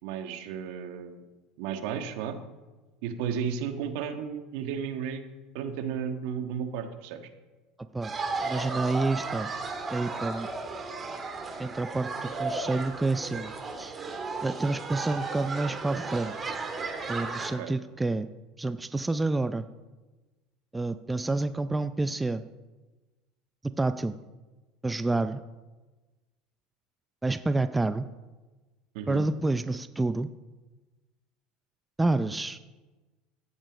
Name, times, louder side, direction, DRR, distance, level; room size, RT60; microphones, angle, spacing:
voice 1, 0.0-1.2 1.6-2.4 3.0-5.2 5.5-7.2 17.6-17.7 28.9-29.2, right 7 dB, 70° right, 7 dB, 1.5 m, -33 dB
sound 1, 8.0-17.5, right 3 dB, 30° right, 2.2 m, -34 dB
voice 2, 8.4-9.5 9.9-10.5 11.6-13.5 13.8-14.0 14.4-16.6 17.1-18.3 18.6-19.7 20.7-22.4 23.8-24.2 24.8-25.4 27.2-28.1 29.1-30.3 32.0-32.6, right 2 dB, 10° right, 12 dB, 0.5 m, -28 dB
14.5 x 8.8 x 5.2 m, 1.2 s
hypercardioid pair, 85°, 0 cm